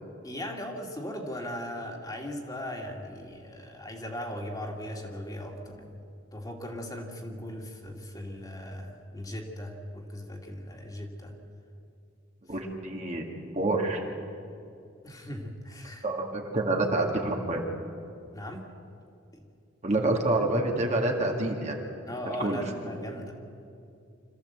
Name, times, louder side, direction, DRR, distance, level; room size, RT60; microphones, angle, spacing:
voice 1, 0.2-6.0 6.3-11.4 14.6-14.7 15.0-16.1 18.3-18.7 19.3-19.4 22.1-23.3, equal, 20° left, 1 dB, 2.3 m, -38 dB
voice 2, 12.5-13.2 13.5-14.0 16.0-17.6 19.8-21.8 22.4-22.6, right 2 dB, 35° right, 1 dB, 2.1 m, -27 dB
26.0 x 14.5 x 7.9 m, 2.5 s
head